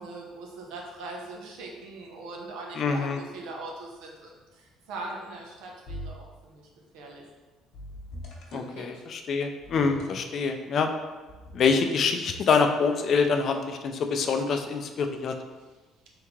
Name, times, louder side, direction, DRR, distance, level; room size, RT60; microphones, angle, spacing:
voice 1, 0.0-6.6 6.9-7.3 8.5-9.0, right 2 dB, 90° right, 0 dB, 0.8 m, -41 dB
voice 2, 2.8-3.2 8.5-10.9 11.5-15.4, left 5 dB, 50° left, 5 dB, 0.4 m, -25 dB
sound 1, 5.9-6.4 7.7-8.7 9.6-10.3 11.3-12.1, left 1 dB, 70° left, 0.9 m, -42 dB
3.6 x 3.4 x 3.1 m, 1.3 s
cardioid pair, 110°, 0 cm